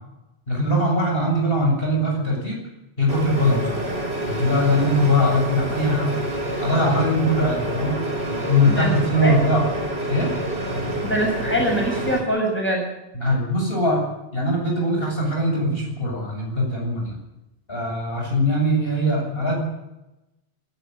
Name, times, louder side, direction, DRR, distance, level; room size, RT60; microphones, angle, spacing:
voice 1, 0.5-2.6 3.0-3.8 4.3-6.1 6.6-8.0 8.3-9.6 10.1-10.3 13.1-14.0 14.3-17.2 17.7-19.6, left 1 dB, 60° left, -1 dB, 7.8 m, -21 dB
sound 1, 3.1-12.2, right 1 dB, 65° right, 5.2 m, -27 dB
voice 2, 11.0-12.9, equal, 10° left, -1 dB, 7.8 m, -23 dB
27.0 x 12.0 x 9.7 m, 0.94 s
omnidirectional pair, 1.1 m